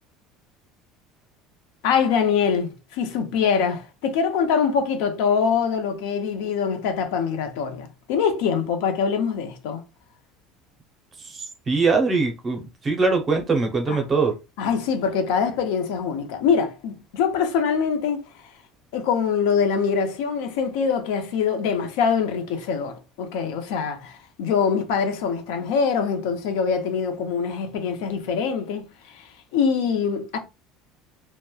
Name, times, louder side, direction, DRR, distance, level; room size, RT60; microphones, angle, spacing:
voice 1, 1.8-9.8 13.9-14.0 14.6-18.3 18.9-30.4, left 6 dB, 75° left, 0.5 m, -24 dB
voice 2, 11.3-14.3, right 4 dB, 20° right, 0.5 m, -22 dB
2.9 x 2.1 x 2.2 m
cardioid pair, 175°, 0 cm